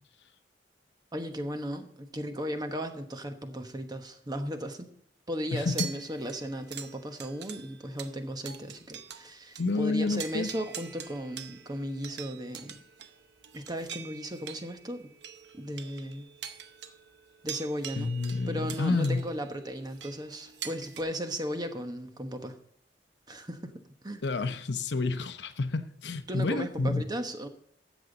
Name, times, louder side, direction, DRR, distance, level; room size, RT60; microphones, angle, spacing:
voice 1, 1.1-4.9 5.3-12.8 13.5-15.1 15.6-16.3 17.4-18.1 18.5-22.6 23.3-24.2 26.3-27.5, equal, 25° right, 7 dB, 1.1 m, -36 dB
voice 2, 5.5-5.9 9.6-10.5 18.0-19.2 24.2-27.0, left 3 dB, 70° left, 10 dB, 0.8 m, -29 dB
sound 1, 5.7-9.3 9.5-9.7 10.1-21.0, right 8 dB, 70° right, 0.8 m, -44 dB
13.0 x 8.2 x 4.0 m, 0.67 s
head